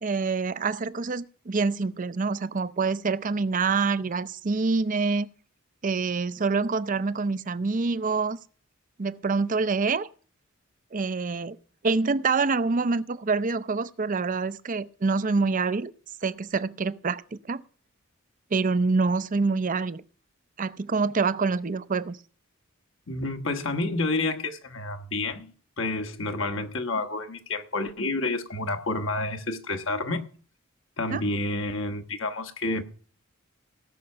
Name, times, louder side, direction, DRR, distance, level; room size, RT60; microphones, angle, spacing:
voice 1, 0.0-5.3 5.8-8.4 9.0-10.1 10.9-11.6 11.8-15.9 16.2-17.6 18.5-20.0 20.6-22.2 31.1-31.2, right 4 dB, 40° right, 0.5 m, -26 dB
voice 2, 23.1-25.5 25.8-30.2 31.0-32.8, left 2 dB, 65° left, 1.4 m, -29 dB
17.5 x 6.4 x 5.7 m
head